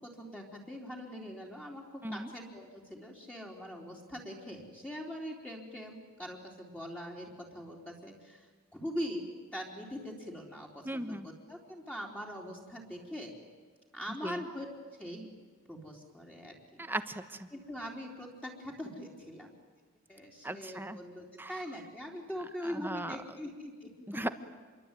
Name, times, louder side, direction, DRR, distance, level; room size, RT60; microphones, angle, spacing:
voice 1, 0.0-8.5 8.7-13.3 13.9-15.3 15.7-16.9 17.5-19.5 20.1-23.9, equal, 5° left, -2 dB, 3.9 m, -42 dB
voice 2, 10.8-11.3 14.2-14.4 16.9-17.2 20.4-21.0 21.4-21.5 22.7-23.2 24.1-24.3, right 1 dB, 10° right, 10 dB, 1.3 m, -36 dB
28.0 x 23.0 x 9.3 m, 1.5 s
head